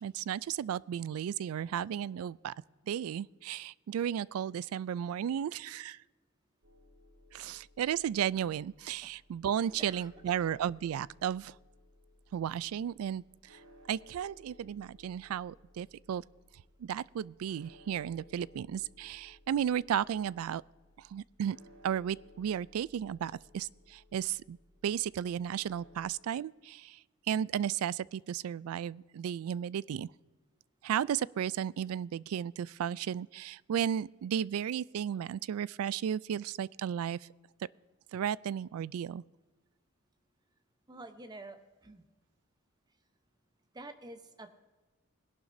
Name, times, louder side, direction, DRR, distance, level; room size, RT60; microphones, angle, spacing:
voice 1, 0.0-2.5 2.9-6.0 7.3-11.5 12.3-13.2 13.9-16.2 16.8-20.6 21.1-21.6 21.8-24.6 24.8-27.0 27.3-30.1 30.8-37.2 38.1-39.2, right 9 dB, 85° right, 0.3 m, -34 dB
sound 1, 6.6-26.1, left 1 dB, 60° right, 1.9 m, -60 dB
voice 2, 9.8-10.4 40.9-42.0 43.7-44.5, right 2 dB, 20° right, 0.8 m, -49 dB
21.0 x 11.5 x 2.7 m
head